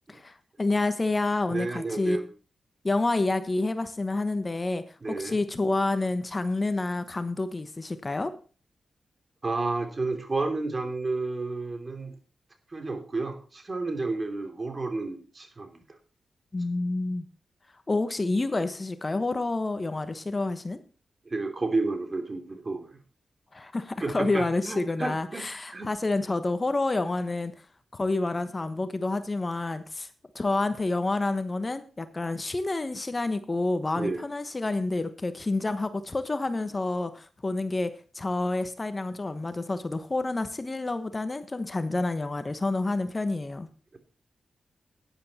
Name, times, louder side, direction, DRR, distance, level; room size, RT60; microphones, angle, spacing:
voice 1, 0.1-2.2 2.8-8.3 16.5-17.2 17.9-20.8 23.5-27.5 27.9-30.1 30.3-43.7, left 2 dB, 35° left, 11 dB, 1.2 m, -28 dB
voice 2, 1.5-2.2 5.0-5.4 9.4-12.1 12.7-15.8 21.2-23.0 24.0-25.4 25.7-25.9 34.0-34.2, right 3 dB, 40° right, 5 dB, 3.1 m, -31 dB
11.5 x 10.5 x 4.3 m, 0.37 s
cardioid pair, 50°, 0 cm